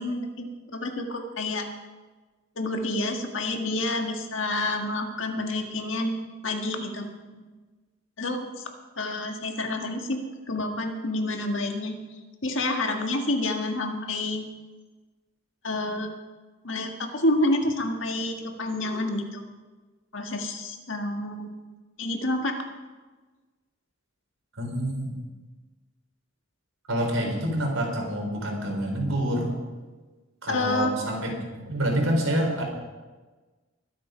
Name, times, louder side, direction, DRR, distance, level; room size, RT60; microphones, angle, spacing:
voice 1, 0.0-1.6 2.6-6.2 6.4-7.4 8.2-8.5 9.0-12.0 12.4-14.5 15.6-16.1 16.6-19.4 20.1-21.5 22.0-22.6 30.5-30.9, left 2 dB, 65° left, 3 dB, 1.8 m, -28 dB
voice 2, 24.6-25.2 26.9-29.5 30.4-32.6, equal, 90° right, 1 dB, 4.0 m, -27 dB
22.5 x 7.8 x 5.1 m, 1.3 s
head